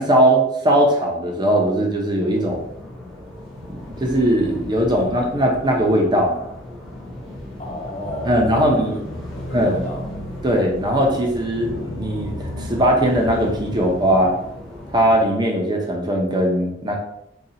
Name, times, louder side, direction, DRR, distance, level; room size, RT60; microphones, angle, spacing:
voice 1, 0.0-2.6 4.0-6.5 8.3-8.9 9.5-9.8 10.4-14.3 14.9-17.0, right 1 dB, 25° right, 0 dB, 0.6 m, -19 dB
sound 1, 2.3-15.3, left 1 dB, 5° left, 0.9 m, -36 dB
voice 2, 7.6-10.1, equal, 35° left, -4 dB, 1.1 m, -33 dB
sound 2, 8.0-13.6, left 1 dB, 80° left, 0.5 m, -34 dB
4.0 x 2.3 x 2.7 m, 0.78 s
head